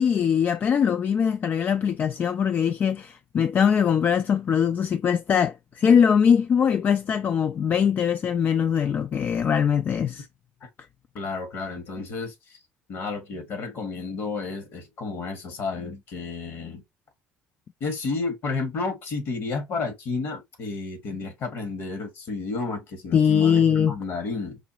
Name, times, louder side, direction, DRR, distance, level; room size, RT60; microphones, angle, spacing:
voice 1, 0.0-10.3 23.1-23.9, left 7 dB, 40° left, 0.3 m, -22 dB
voice 2, 11.1-12.3 12.9-16.8 17.8-24.6, left 4 dB, 60° left, 1.6 m, -31 dB
4.9 x 2.3 x 2.8 m
supercardioid pair, 95°, 5 cm